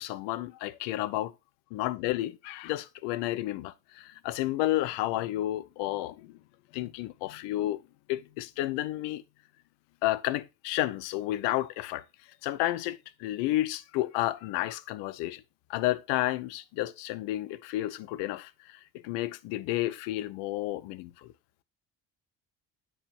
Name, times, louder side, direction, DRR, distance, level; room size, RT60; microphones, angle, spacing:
voice 1, 0.0-1.3 1.7-6.4 6.7-7.8 8.1-9.2 10.0-12.0 12.4-15.4 15.7-21.3, left 16 dB, 55° left, 0.7 m, -31 dB
9.8 x 4.6 x 2.9 m
figure-of-eight pair, 45°, 50 cm